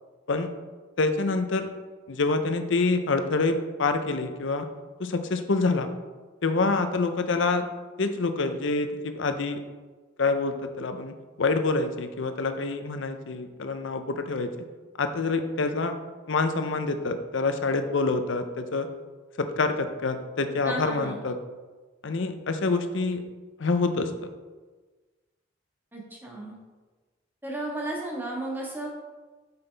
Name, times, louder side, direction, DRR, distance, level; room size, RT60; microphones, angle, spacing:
voice 1, 1.0-1.7 2.1-4.7 5.0-5.9 6.4-7.7 8.0-9.6 10.2-14.5 15.0-16.0 16.3-18.9 19.4-21.4 22.0-23.2 23.6-24.3, left 3 dB, 65° left, 8 dB, 0.6 m, -26 dB
voice 2, 20.6-21.2 25.9-26.6 27.4-28.9, right 1 dB, 10° right, -3 dB, 1.4 m, -33 dB
8.1 x 5.6 x 3.3 m, 1.3 s
head